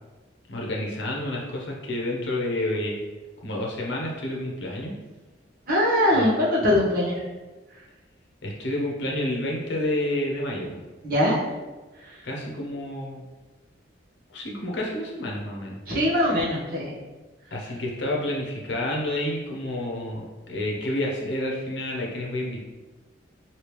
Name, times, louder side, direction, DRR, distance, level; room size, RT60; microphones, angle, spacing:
voice 1, 0.5-3.0 3.4-4.9 6.1-6.3 8.4-10.8 12.2-13.2 14.3-15.8 17.5-22.6, left 1 dB, 65° left, -2 dB, 0.7 m, -29 dB
voice 2, 5.7-7.3 11.0-11.4 12.0-12.2 15.9-16.9, left 1 dB, 50° right, -7 dB, 1.0 m, -22 dB
3.3 x 2.8 x 3.0 m, 1.2 s
head